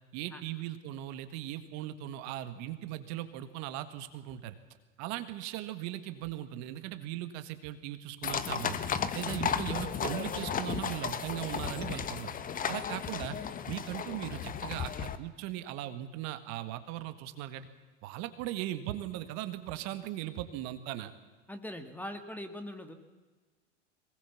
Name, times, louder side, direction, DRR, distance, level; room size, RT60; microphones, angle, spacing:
voice 1, 0.1-4.6 5.0-8.8 9.1-12.3 12.7-13.4 13.7-17.7 18.0-21.1, right 13 dB, 50° right, 11 dB, 1.8 m, -38 dB
sound 1, 8.2-15.2, left 7 dB, 25° left, 1.3 m, -34 dB
voice 2, 21.5-22.9, left 1 dB, 5° left, 7 dB, 2.1 m, -41 dB
23.0 x 20.0 x 7.2 m, 1.3 s
hypercardioid pair, 105°, 36 cm